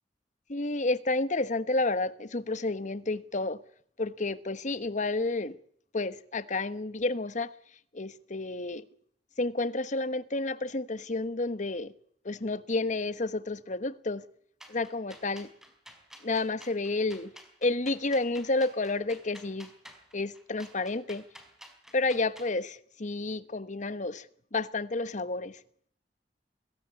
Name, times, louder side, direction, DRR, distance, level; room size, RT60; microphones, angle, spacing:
voice 1, 0.5-3.6 4.0-5.6 5.9-7.5 7.9-8.8 9.4-11.9 12.2-14.2 14.7-15.5 16.2-17.3 17.6-19.7 20.1-21.2 21.9-24.3 24.5-25.6, left 2 dB, 45° left, 1.2 m, -30 dB
sound 1, 14.6-22.5, equal, 5° right, 4.4 m, -51 dB
21.5 x 16.5 x 9.5 m
head